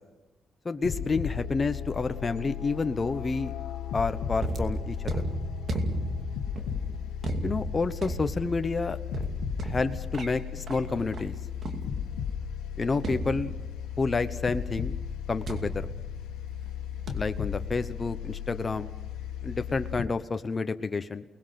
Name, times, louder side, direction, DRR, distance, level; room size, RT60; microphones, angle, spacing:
voice 1, 0.6-3.5 3.9-5.2 7.4-9.0 9.6-11.4 12.8-13.5 14.0-15.0 15.3-15.9 17.1-18.9 19.4-21.2, left 4 dB, 30° left, 9 dB, 1.1 m, -29 dB
sound 1, 0.8-20.0, left 8 dB, 90° left, 1.6 m, -36 dB
sound 2, 4.4-12.3 13.0-14.0 15.5-16.7 17.1-17.4, right 1 dB, 50° right, 2.6 m, -35 dB
29.5 x 20.5 x 5.9 m, 1.1 s
cardioid pair, 90°, 0 cm